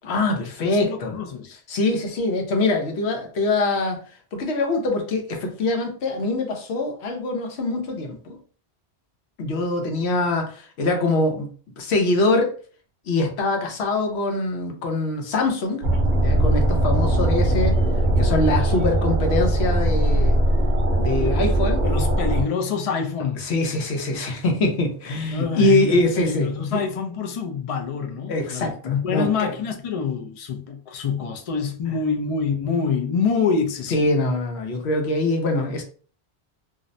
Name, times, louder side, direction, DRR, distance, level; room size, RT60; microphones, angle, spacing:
voice 1, 0.0-1.1 1.7-4.0 4.3-8.4 9.4-11.5 11.8-12.5 13.1-15.8 16.2-17.8 18.2-20.4 21.0-21.8 23.4-26.8 28.3-29.5 33.9-35.8, left 2 dB, 80° left, 0.9 m, -23 dB
voice 2, 0.6-1.6 21.8-23.5 25.3-34.1, left 6 dB, 55° left, 0.4 m, -26 dB
sound 1, 15.8-22.4, right 1 dB, 55° right, 0.7 m, -20 dB
2.5 x 2.0 x 2.5 m
omnidirectional pair, 1.1 m